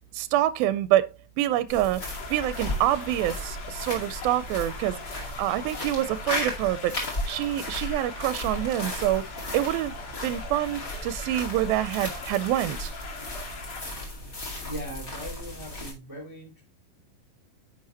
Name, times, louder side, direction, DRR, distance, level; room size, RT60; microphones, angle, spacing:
voice 1, 0.1-1.1 1.4-2.0 2.3-7.0 7.3-9.2 9.5-9.9 10.2-12.9, right 13 dB, 85° right, 2.4 m, -26 dB
sound 1, 1.7-15.9, left 1 dB, 30° left, 1.9 m, -36 dB
sound 2, 2.0-13.8, left 4 dB, 50° left, 3.1 m, -41 dB
voice 2, 14.6-16.6, equal, 5° right, 2.3 m, -39 dB
9.7 x 6.2 x 2.8 m
omnidirectional pair, 4.2 m